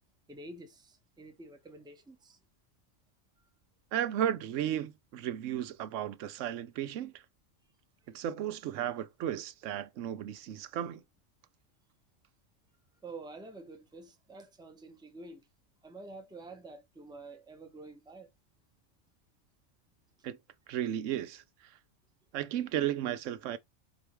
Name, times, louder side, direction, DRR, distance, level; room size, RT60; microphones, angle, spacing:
voice 1, 0.3-2.4 13.0-15.5 15.8-18.3, right 2 dB, 5° right, 0.7 m, -48 dB
voice 2, 3.9-7.1 8.1-11.0 20.2-20.4 20.7-21.4 22.3-23.6, right 11 dB, 80° right, 0.9 m, -34 dB
4.5 x 3.4 x 3.0 m
omnidirectional pair, 1.3 m